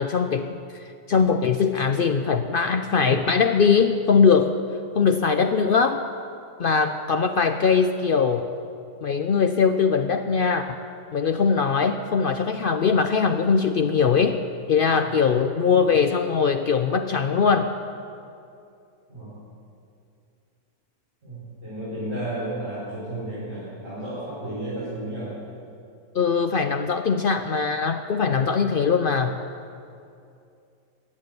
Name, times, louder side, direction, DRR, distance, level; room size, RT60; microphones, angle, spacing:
voice 1, 0.0-4.6 4.9-6.0 6.6-8.5 9.0-10.8 11.1-14.4 14.7-17.7 26.1-29.4, left 5 dB, 75° left, 7 dB, 0.5 m, -21 dB
voice 2, 21.2-25.4, right 1 dB, 40° right, -9 dB, 4.8 m, -33 dB
15.0 x 8.3 x 9.4 m, 2.5 s
omnidirectional pair, 1.6 m